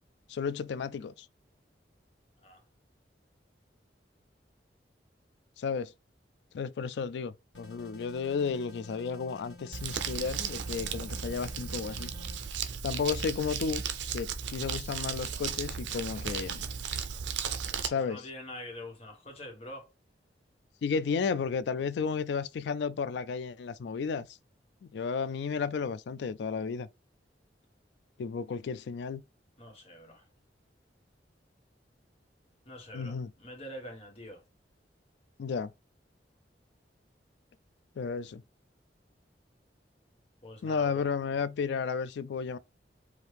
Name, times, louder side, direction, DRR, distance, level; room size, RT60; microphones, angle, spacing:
voice 1, 0.3-1.3 5.6-5.9 6.5-12.1 12.8-13.8 14.1-16.6 17.8-18.2 20.8-24.3 24.9-26.9 28.2-29.2 32.9-33.3 35.4-35.7 38.0-38.4 40.6-42.6, left 5 dB, 70° left, 0.3 m, -33 dB
sound 1, 7.5-12.4, left 2 dB, 90° left, 1.3 m, -50 dB
Crumpling crinkling, 9.7-17.9, right 7 dB, 85° right, 0.5 m, -35 dB
voice 2, 17.7-19.9 29.6-30.2 32.6-34.4 40.4-41.1, left 1 dB, 35° left, 1.5 m, -45 dB
4.8 x 2.7 x 3.3 m
head